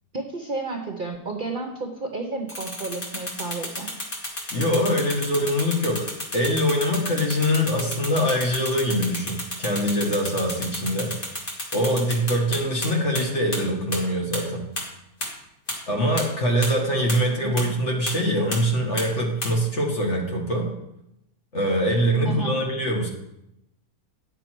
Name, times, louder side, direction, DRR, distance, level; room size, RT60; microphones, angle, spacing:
voice 1, 0.1-3.9 17.3-17.7 22.2-22.6, right 3 dB, 45° right, 2 dB, 0.8 m, -32 dB
sound 1, 2.5-12.9 13.1-13.2 13.5-13.6 13.9-14.0 14.3-14.4 14.8-14.9 15.2-15.3 15.7-15.8 16.2-16.3 16.6-16.7 17.1-17.2 17.6-17.7 18.1-18.2 18.5-18.6 19.0-19.1 19.4-19.5, left 1 dB, 35° left, 2.0 m, -30 dB
voice 2, 4.5-11.2 11.7-14.7 15.9-20.8 21.5-23.1, equal, 50° left, 0 dB, 1.9 m, -23 dB
9.8 x 6.7 x 4.6 m, 0.85 s
omnidirectional pair, 1.6 m